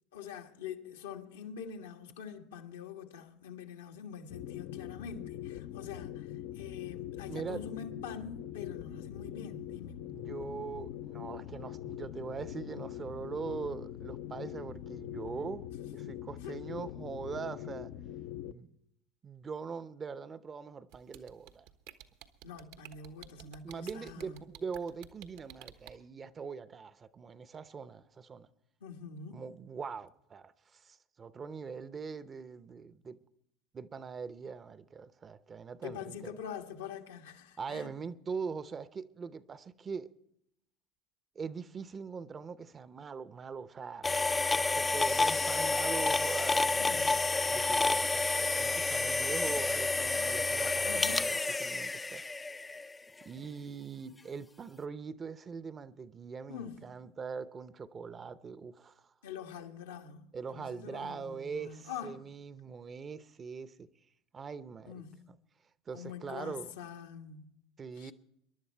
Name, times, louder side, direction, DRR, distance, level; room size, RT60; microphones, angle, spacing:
voice 1, 0.1-10.1 16.0-16.1 16.4-16.6 22.4-24.4 28.8-29.5 35.8-37.9 46.8-47.3 50.8-51.3 56.5-56.8 59.2-62.3 64.9-65.3 65.9-67.5 68.0-68.1, left 7 dB, 80° left, 1.5 m, -45 dB
sound 1, 4.3-18.5, left 12 dB, 60° left, 0.6 m, -43 dB
voice 2, 7.3-7.7 10.1-15.6 15.9-17.9 18.4-18.7 19.2-21.7 23.4-28.5 29.3-33.2 33.7-36.3 37.6-40.1 41.3-44.1 44.7-47.2 47.5-52.2 53.2-59.1 60.3-63.9 64.3-65.0 65.9-66.7 67.8-68.1, right 5 dB, 30° right, 0.7 m, -42 dB
sound 2, 20.9-25.9, right 12 dB, 70° right, 1.2 m, -50 dB
sound 3, 44.0-52.9, left 3 dB, 15° left, 0.4 m, -29 dB
23.5 x 11.0 x 4.5 m
hypercardioid pair, 80°, 0 cm